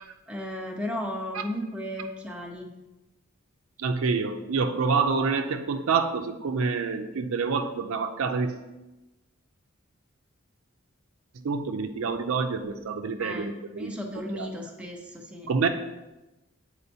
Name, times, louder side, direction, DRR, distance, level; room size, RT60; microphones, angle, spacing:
voice 1, 0.3-2.7 13.2-13.5 13.8-15.5, left 1 dB, 5° right, 0 dB, 0.5 m, -35 dB
voice 2, 3.8-8.6 11.4-14.0 14.3-14.5 15.5-15.7, right 4 dB, 75° right, 7 dB, 0.5 m, -27 dB
7.9 x 4.3 x 2.8 m, 1.0 s
head